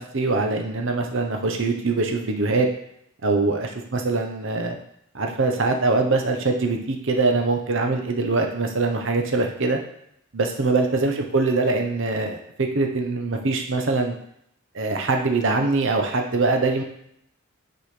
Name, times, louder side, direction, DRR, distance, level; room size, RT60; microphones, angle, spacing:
voice 1, 0.0-2.7 3.2-4.8 5.1-9.8 10.3-14.1 14.7-16.8, right 3 dB, 65° right, 4 dB, 1.0 m, -23 dB
6.8 x 4.0 x 4.9 m, 0.73 s
head